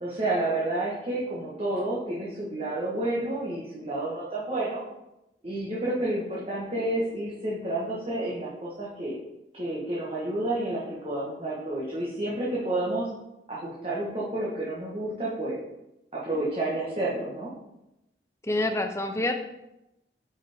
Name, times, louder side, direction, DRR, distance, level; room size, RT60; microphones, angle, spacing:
voice 1, 0.0-4.8 5.4-9.1 9.5-13.1 13.5-15.6 16.1-17.5, right 1 dB, 30° right, -6 dB, 1.2 m, -30 dB
voice 2, 18.4-19.4, left 2 dB, 15° left, 5 dB, 0.5 m, -27 dB
7.6 x 5.0 x 3.5 m, 0.90 s
head